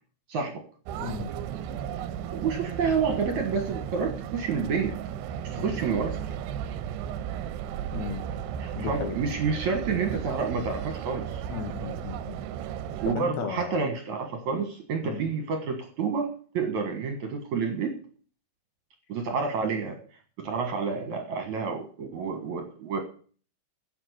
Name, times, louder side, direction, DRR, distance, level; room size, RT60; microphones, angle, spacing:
sound 1, 0.9-13.2, right 9 dB, 85° right, 2.8 m, -35 dB
voice 1, 1.0-1.3 5.6-5.8 7.9-8.2 8.8-9.2 11.5-12.4 13.1-13.8 15.0-15.3, left 7 dB, 80° left, 6 dB, 4.0 m, -35 dB
voice 2, 2.3-4.9 5.5-6.3 8.6-11.4 13.0-16.3 16.5-17.9 19.1-20.0 20.4-23.0, right 5 dB, 60° right, 5 dB, 2.3 m, -29 dB
11.0 x 7.1 x 8.0 m, 0.42 s
omnidirectional pair, 4.9 m